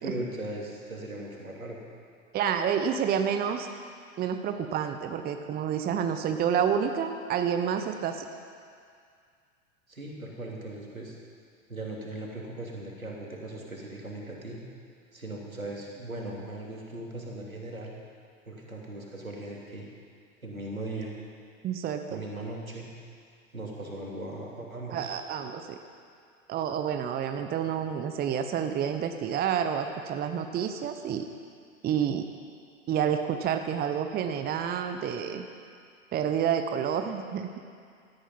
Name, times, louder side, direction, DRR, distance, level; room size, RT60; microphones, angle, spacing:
voice 1, 0.0-1.8 9.9-11.1 11.7-14.6 15.1-17.9 18.5-19.9 20.4-21.2 22.1-22.9 23.5-25.1, right 1 dB, 90° right, -2 dB, 3.1 m, -38 dB
voice 2, 2.3-3.7 4.2-8.3 21.6-22.2 24.9-25.8 26.5-31.3 31.8-32.2 32.9-35.5 36.1-37.5, right 8 dB, 25° right, 7 dB, 0.9 m, -29 dB
17.5 x 13.0 x 5.5 m, 2.2 s
figure-of-eight pair, 90°, 40 cm